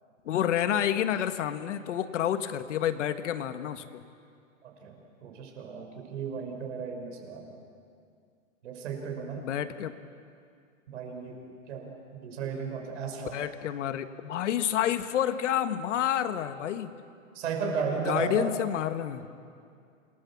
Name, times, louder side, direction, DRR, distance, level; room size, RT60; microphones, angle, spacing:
voice 1, 0.2-4.0 9.4-9.9 13.2-16.9 18.0-19.3, left 10 dB, 60° left, 10 dB, 1.5 m, -29 dB
voice 2, 4.6-7.5 8.6-9.4 10.9-11.4 11.7-13.4 17.3-18.5, right 5 dB, 55° right, 3 dB, 5.7 m, -35 dB
27.5 x 20.5 x 7.2 m, 2.3 s
hypercardioid pair, 155°, 42 cm